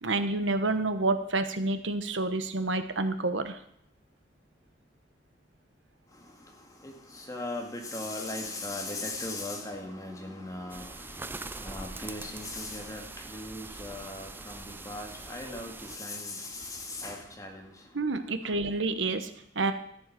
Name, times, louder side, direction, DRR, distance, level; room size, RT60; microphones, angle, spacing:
voice 1, 0.0-3.6 17.9-19.7, right 3 dB, 85° right, 10 dB, 1.1 m, -29 dB
voice 2, 7.3-10.9 11.6-17.7, left 2 dB, 20° left, 1 dB, 2.1 m, -38 dB
sound 1, 10.7-16.0, right 3 dB, 10° right, 0.4 m, -43 dB
13.5 x 7.8 x 6.0 m, 0.71 s
head